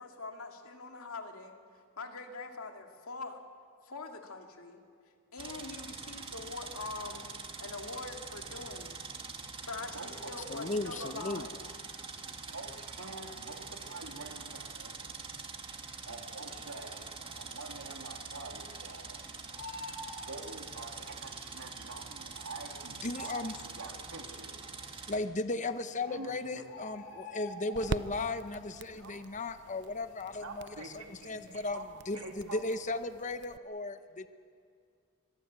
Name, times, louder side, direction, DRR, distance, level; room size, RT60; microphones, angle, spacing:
voice 1, 0.0-1.5 2.0-3.4 3.8-4.8 5.3-7.3 7.6-9.0 9.6-11.6, left 3 dB, 70° left, 4 dB, 2.4 m, -43 dB
sound 1, 5.4-25.2, right 4 dB, 25° right, 1.8 m, -45 dB
voice 2, 9.9-10.7 12.5-14.9 16.0-19.2 20.1-24.7 26.1-27.0 28.9-29.3 30.4-32.6, right 3 dB, 85° right, 2 dB, 3.1 m, -46 dB
voice 3, 10.5-11.5 23.0-23.5 25.1-31.8 32.1-34.3, left 2 dB, 35° left, 10 dB, 0.9 m, -36 dB
Bird, 16.9-17.2 17.5-17.6 17.9-19.1 19.3-21.2 22.0-22.1 22.8-22.9 23.0-23.2 23.8-24.3 25.2-25.3 25.7-25.8 26.0-28.3 28.6-29.0 29.3-30.6 31.0-31.2, left 2 dB, 55° left, 3.4 m, -47 dB
sound 2, 25.7-33.6, right 4 dB, 50° right, 0.6 m, -45 dB
24.5 x 21.0 x 8.2 m, 2.3 s
head